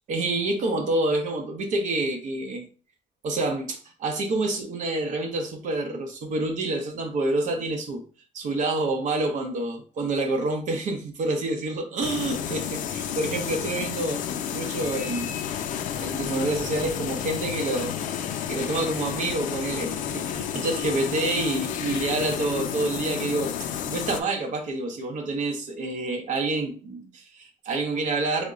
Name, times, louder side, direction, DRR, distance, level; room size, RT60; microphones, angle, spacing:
voice 1, 0.1-2.7 3.2-8.0 8.3-14.2 14.5-15.5 16.0-17.9 18.5-28.5, right 2 dB, 70° right, 3 dB, 0.7 m, -28 dB
sound 1, 12.0-24.2, left 9 dB, 75° left, 0.4 m, -31 dB
3.5 x 2.1 x 3.7 m, 0.37 s
cardioid pair, 160°, 13 cm